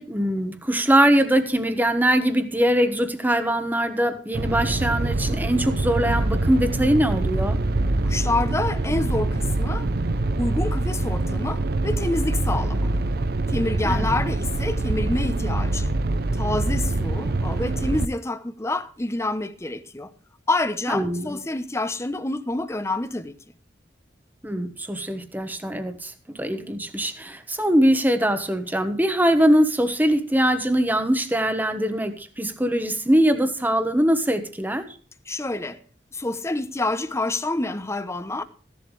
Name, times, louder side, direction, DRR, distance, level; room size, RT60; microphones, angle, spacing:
voice 1, 0.0-7.6 13.8-14.1 20.9-21.4 24.4-34.8, right 1 dB, 10° right, 1.2 m, -22 dB
sound 1, 4.3-18.0, right 2 dB, 55° right, 0.7 m, -24 dB
voice 2, 8.0-9.9 10.4-12.9 13.5-15.9 16.4-20.1 20.5-23.3 35.3-35.8 36.1-38.4, left 2 dB, 15° left, 0.8 m, -27 dB
15.0 x 11.5 x 3.2 m
head